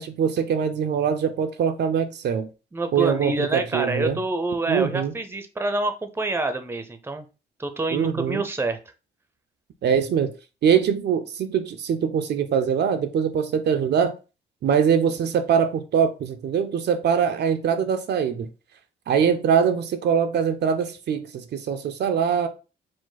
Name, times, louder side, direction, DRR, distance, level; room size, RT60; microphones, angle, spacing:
voice 1, 0.0-2.5 2.9-4.2 4.7-5.1 7.9-8.4 9.8-10.3 10.6-14.1 14.6-18.5 19.1-22.5, right 7 dB, 60° right, 0.5 m, -23 dB
voice 2, 2.7-7.2 7.6-8.8, right 2 dB, 10° right, 0.6 m, -27 dB
5.0 x 2.1 x 3.9 m
cardioid pair, 90°, 20 cm